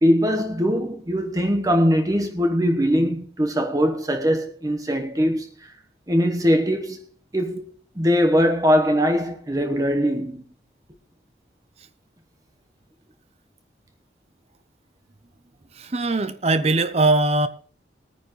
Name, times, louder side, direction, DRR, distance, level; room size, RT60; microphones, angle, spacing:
voice 1, 0.0-5.7 6.1-7.0 7.3-7.6 8.0-10.4, equal, 20° right, 1.0 m, -21 dB
voice 2, 15.8-17.5, right 2 dB, 35° right, 0.6 m, -20 dB
20.0 x 9.6 x 3.1 m
head